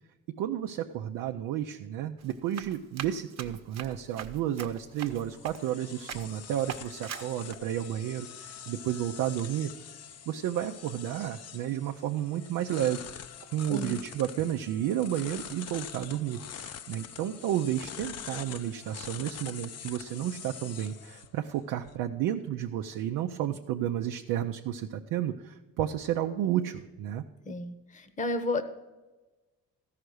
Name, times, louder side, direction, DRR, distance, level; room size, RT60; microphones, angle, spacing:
voice 1, 0.3-9.7 10.3-13.0 13.5-27.3, right 11 dB, 85° right, 3 dB, 0.6 m, -32 dB
Run, 2.2-5.8 6.1-6.4 6.7-7.6, right 8 dB, 55° right, 1.0 m, -42 dB
sound 1, 4.8-21.9, left 8 dB, 50° left, 0.6 m, -45 dB
voice 2, 27.5-28.6, left 2 dB, 25° left, 10 dB, 0.9 m, -32 dB
13.5 x 5.8 x 6.3 m, 1.2 s
cardioid pair, 75°, 31 cm